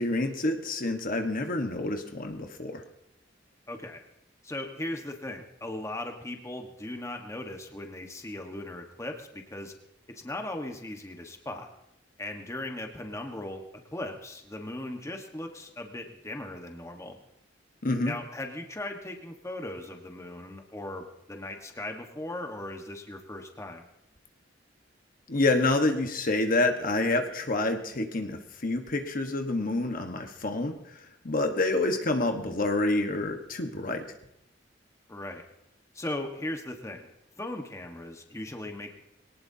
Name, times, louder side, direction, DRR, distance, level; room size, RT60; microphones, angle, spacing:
voice 1, 0.0-2.8 17.8-18.1 25.3-30.8 31.2-34.0, left 2 dB, 50° left, 5 dB, 1.3 m, -27 dB
voice 2, 3.7-4.0 4.4-9.7 10.1-11.7 12.2-13.6 13.9-17.2 18.1-23.8 35.1-35.4 35.9-37.1 37.4-38.9, left 1 dB, 15° left, 3 dB, 1.3 m, -38 dB
23.0 x 18.5 x 2.8 m, 0.82 s
head